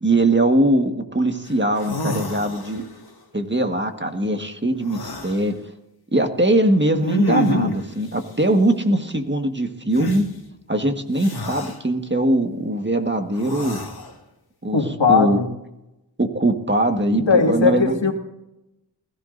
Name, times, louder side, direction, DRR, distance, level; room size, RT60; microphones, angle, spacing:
voice 1, 0.0-2.9 3.3-5.6 6.1-10.2 10.7-13.8 14.6-14.8 15.1-15.4 16.2-17.9, right 1 dB, 25° right, 5 dB, 1.6 m, -21 dB
sound 1, 1.5-1.6 1.8-3.0 4.8-5.4 7.0-7.9 9.9-10.2 11.2-11.8 13.3-14.1, left 1 dB, 55° left, 1.9 m, -27 dB
voice 2, 14.7-15.5 17.1-18.1, left 5 dB, 80° left, 2 dB, 2.2 m, -18 dB
20.5 x 14.5 x 2.6 m, 0.90 s
wide cardioid pair, 50°, 44 cm